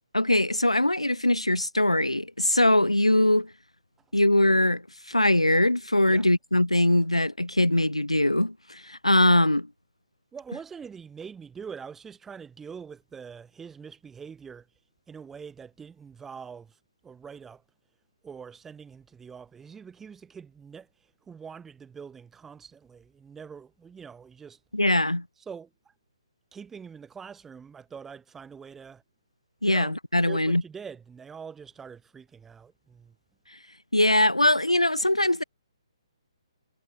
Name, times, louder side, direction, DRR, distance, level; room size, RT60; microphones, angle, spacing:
voice 1, 0.1-3.5 4.1-9.7 24.7-25.2 29.6-30.6 33.9-35.4, left 1 dB, 85° left, 0.4 m, -22 dB
voice 2, 10.3-14.7 15.1-16.8 17.0-17.6 18.2-20.9 21.3-24.6 25.5-25.7 26.5-29.0 29.7-29.9 30.2-33.1, right 6 dB, 10° right, 3.7 m, -44 dB
figure-of-eight pair, 135°, 3 cm